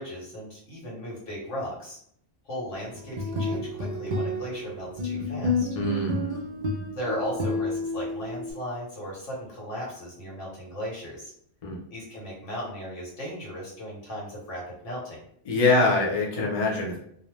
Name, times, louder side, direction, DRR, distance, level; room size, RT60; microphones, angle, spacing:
voice 1, 0.0-2.0 2.4-5.7 6.9-11.3 11.9-15.2, equal, 85° left, -4 dB, 1.4 m, -36 dB
sound 1, 3.0-8.5, left 2 dB, 55° right, 0.5 m, -30 dB
voice 2, 5.8-6.3 11.6-11.8 15.5-17.0, left 2 dB, 40° left, -3 dB, 0.6 m, -24 dB
2.6 x 2.0 x 3.1 m, 0.68 s
omnidirectional pair, 1.2 m